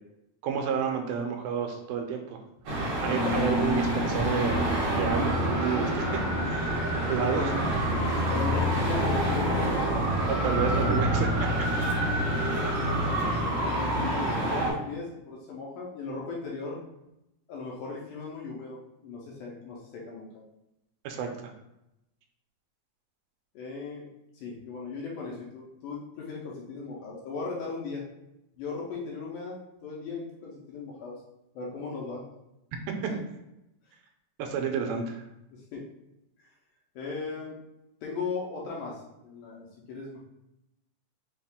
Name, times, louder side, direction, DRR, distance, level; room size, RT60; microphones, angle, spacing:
voice 1, 0.4-2.4 2.7-7.5 10.3-11.3 12.5-12.6 21.0-21.5 32.9-33.1 34.4-35.2, right 7 dB, 85° right, 4 dB, 2.3 m, -31 dB
Traffic noise roadway noise, 2.6-14.7, equal, 65° right, 1.3 m, -27 dB
voice 2, 7.2-7.7 8.3-9.7 13.9-16.8 17.5-20.3 23.6-24.1 24.3-28.0 28.5-31.2 31.6-32.2 35.5-35.8 37.0-37.6 38.0-40.2, left 4 dB, 75° left, -3 dB, 2.0 m, -37 dB
5.5 x 2.4 x 3.5 m, 0.88 s
omnidirectional pair, 4.1 m